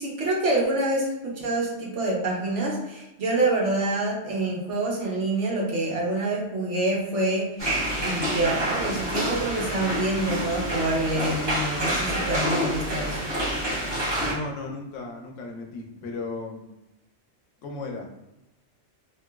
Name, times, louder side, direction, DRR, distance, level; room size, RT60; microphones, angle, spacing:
voice 1, 0.0-7.5 7.9-13.3, right 2 dB, 75° right, -3 dB, 1.2 m, -26 dB
sound 1, 7.6-14.3, right 1 dB, 20° right, 1.1 m, -27 dB
voice 2, 14.3-16.7 17.6-18.1, left 3 dB, 85° left, 2 dB, 0.9 m, -35 dB
2.9 x 2.8 x 2.3 m, 0.94 s
omnidirectional pair, 1.2 m